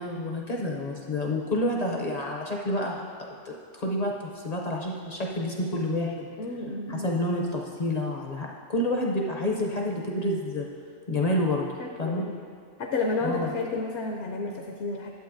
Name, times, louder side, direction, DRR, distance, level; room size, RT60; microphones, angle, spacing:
voice 1, 0.0-3.5 3.8-6.3 6.9-10.7 11.1-11.7 12.0-12.2 13.2-13.5, left 1 dB, 45° left, -1 dB, 0.6 m, -29 dB
voice 2, 6.4-7.1 11.8-12.3 12.8-15.1, left 3 dB, 70° left, 2 dB, 0.9 m, -31 dB
12.0 x 7.4 x 2.6 m, 2.2 s
omnidirectional pair, 1.3 m